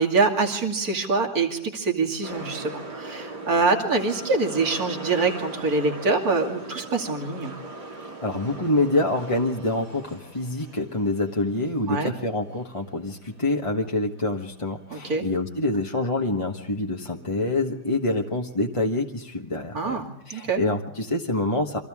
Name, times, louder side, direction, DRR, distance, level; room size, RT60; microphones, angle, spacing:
voice 1, 0.0-7.5 11.9-12.1 14.9-15.3 19.7-20.6, right 3 dB, 65° right, 2 dB, 3.1 m, -25 dB
sound 1, 2.2-14.3 14.5-14.6, right 2 dB, 85° right, 4.2 m, -40 dB
voice 2, 8.2-21.8, left 2 dB, 20° left, 0 dB, 1.3 m, -26 dB
29.5 x 24.5 x 3.7 m, 0.86 s
omnidirectional pair, 1.7 m